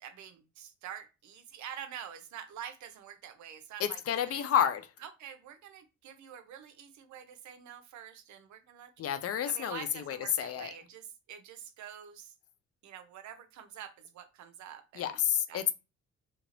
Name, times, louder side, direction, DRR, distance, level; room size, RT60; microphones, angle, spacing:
voice 1, 0.0-4.0 4.3-4.7 5.0-9.0 9.5-12.3 12.8-15.2 15.5-15.7, right 9 dB, 70° right, 0.6 m, -47 dB
voice 2, 3.8-4.8 9.0-10.7 15.0-15.7, left 9 dB, 50° left, 0.5 m, -30 dB
2.8 x 2.6 x 2.9 m
cardioid pair, 90°, 30 cm